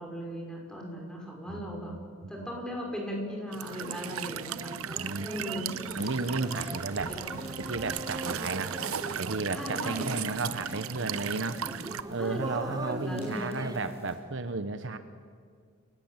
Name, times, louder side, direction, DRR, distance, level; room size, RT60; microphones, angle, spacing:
voice 1, 0.0-1.9 2.3-4.7 5.2-5.8 7.1-7.3 9.5-10.3 12.2-13.7, equal, 5° left, 0 dB, 5.6 m, -37 dB
voice 2, 1.5-1.8 2.4-2.5 5.0-5.3 6.0-7.1 7.6-8.8 9.2-11.6 12.1-15.0, right 3 dB, 60° right, 10 dB, 1.1 m, -33 dB
sound 1, 3.5-13.8, right 1 dB, 20° right, 1.0 m, -42 dB
Walk footsteps / Chirp tweet / Stream, 3.5-12.0, right 8 dB, 85° right, 0.8 m, -37 dB
sound 2, 5.8-14.1, left 1 dB, 30° left, 7.3 m, -51 dB
29.0 x 18.0 x 8.9 m, 2.1 s
head